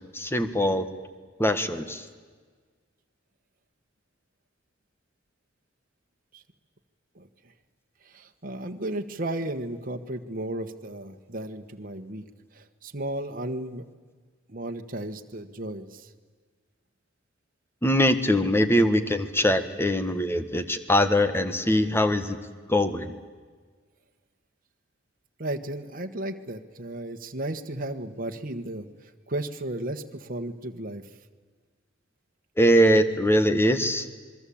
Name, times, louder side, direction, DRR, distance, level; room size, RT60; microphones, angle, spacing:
voice 1, 0.1-0.8 1.4-2.0 17.8-22.4 22.7-23.1 32.6-34.1, equal, 10° left, 10 dB, 1.6 m, -22 dB
voice 2, 8.0-12.2 12.5-13.8 14.5-16.1 25.4-31.1, right 1 dB, 45° right, 5 dB, 1.5 m, -34 dB
27.5 x 22.0 x 8.7 m, 1.5 s
head